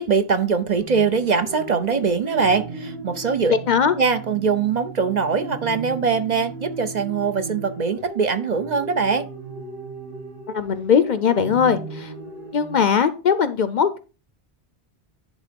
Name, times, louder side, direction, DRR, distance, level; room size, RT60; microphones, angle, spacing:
voice 1, 0.0-3.6 3.9-9.3, right 5 dB, 50° right, 0.7 m, -22 dB
sound 1, 0.8-12.8, right 3 dB, 75° right, 4.3 m, -37 dB
voice 2, 3.5-3.9 10.5-12.1 12.5-14.0, left 7 dB, 55° left, 0.6 m, -20 dB
11.0 x 3.7 x 5.1 m
omnidirectional pair, 1.0 m